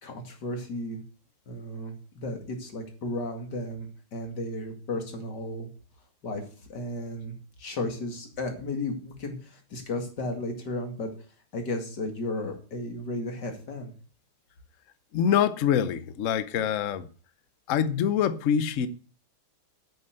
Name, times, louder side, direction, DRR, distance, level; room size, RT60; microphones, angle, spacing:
voice 1, 0.0-1.0 1.5-5.7 6.2-6.4 6.7-11.1 11.5-13.9, left 2 dB, 50° left, 2.8 m, -34 dB
voice 2, 15.1-17.1 17.7-18.9, left 8 dB, 85° left, 0.6 m, -25 dB
8.4 x 7.0 x 7.7 m
omnidirectional pair, 2.4 m